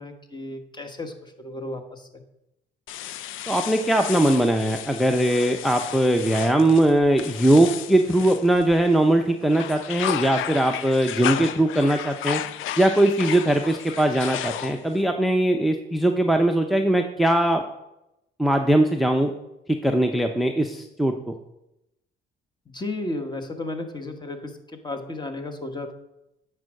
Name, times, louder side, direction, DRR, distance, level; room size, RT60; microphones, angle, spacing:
voice 1, 0.0-2.2 22.7-25.9, left 2 dB, 20° left, 6 dB, 1.3 m, -34 dB
sound 1, 2.9-9.0 9.4-15.0, left 11 dB, 80° left, 0.5 m, -33 dB
voice 2, 3.5-12.4 12.8-17.6 18.4-19.3 19.8-21.3, right 1 dB, ahead, 5 dB, 0.6 m, -20 dB
9.4 x 4.7 x 6.3 m, 0.88 s
cardioid pair, 90°, 20 cm